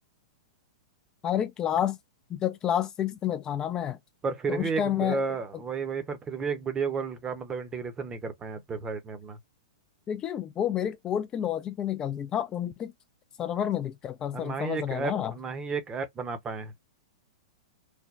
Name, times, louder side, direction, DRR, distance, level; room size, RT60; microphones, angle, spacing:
voice 1, 1.2-2.0 2.3-4.0 4.5-5.2 10.1-12.9 13.4-15.3, left 10 dB, 25° left, 0.3 m, -29 dB
voice 2, 4.2-9.4 14.3-16.7, right 5 dB, 20° right, 0.7 m, -32 dB
3.3 x 2.2 x 2.4 m
hypercardioid pair, 110°, 3 cm